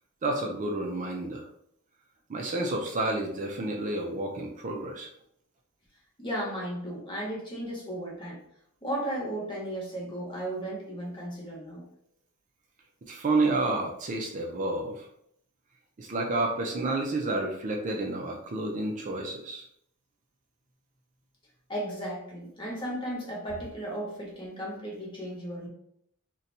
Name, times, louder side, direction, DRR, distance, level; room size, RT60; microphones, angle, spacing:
voice 1, 0.2-1.5 2.3-5.1 13.1-15.1 16.0-19.6, right 2 dB, 35° right, 1 dB, 0.4 m, -30 dB
voice 2, 6.2-8.4 8.8-11.9 21.7-25.7, right 1 dB, 25° left, -3 dB, 1.0 m, -35 dB
2.6 x 2.2 x 4.0 m, 0.70 s
head